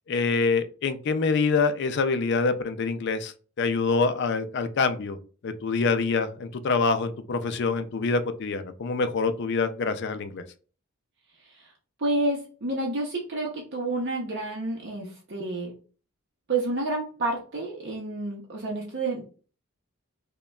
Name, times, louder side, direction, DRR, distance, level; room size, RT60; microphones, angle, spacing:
voice 1, 0.1-5.2 5.4-10.4, left 4 dB, 50° left, 10 dB, 0.4 m, -25 dB
voice 2, 12.0-15.8 16.5-19.2, right 2 dB, 50° right, -2 dB, 0.6 m, -29 dB
5.1 x 2.2 x 2.2 m, 0.39 s
head